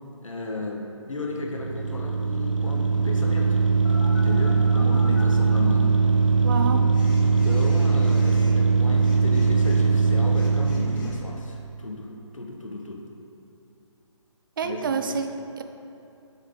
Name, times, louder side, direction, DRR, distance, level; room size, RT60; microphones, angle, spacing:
voice 1, 0.2-3.6 4.1-5.9 6.5-6.7 7.2-12.1 12.3-13.0 14.6-15.2, left 2 dB, 90° left, 0 dB, 1.3 m, -34 dB
sound 1, 1.3-11.2, right 4 dB, 80° right, 0.9 m, -21 dB
Telephone, 3.8-5.2 6.9-11.3, left 1 dB, 45° left, 1.3 m, -43 dB
voice 2, 6.4-6.9 14.6-15.6, right 5 dB, 45° right, 8 dB, 0.5 m, -28 dB
7.3 x 6.4 x 3.8 m, 2.8 s
figure-of-eight pair, 145°, 16 cm